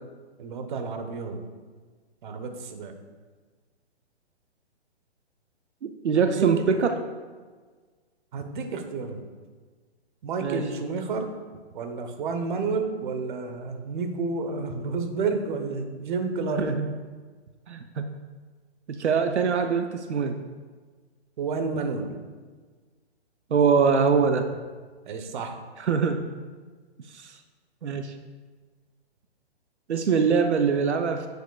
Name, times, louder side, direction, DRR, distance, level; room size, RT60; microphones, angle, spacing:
voice 1, 0.4-1.4 2.2-3.0 6.2-6.6 8.3-9.2 10.2-11.3 11.7-16.7 21.4-22.2 25.1-25.6, right 4 dB, 45° right, 6 dB, 1.1 m, -30 dB
voice 2, 5.8-7.0 10.4-10.6 16.5-16.9 17.7-18.1 18.9-20.4 23.5-24.5 25.8-26.3 27.1-27.4 27.8-28.1 29.9-31.3, right 5 dB, 85° right, 7 dB, 0.7 m, -23 dB
10.0 x 8.1 x 2.4 m, 1.5 s
hypercardioid pair, 145°, 33 cm